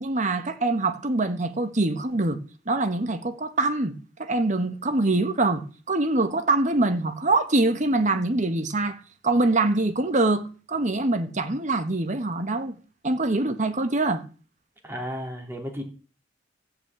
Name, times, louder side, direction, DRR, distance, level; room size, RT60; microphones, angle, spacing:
voice 1, 0.0-2.4 2.7-12.7 13.0-14.2, right 2 dB, 40° right, 1.4 m, -24 dB
voice 2, 14.8-15.8, equal, 15° right, 3.2 m, -33 dB
15.5 x 6.1 x 8.7 m
head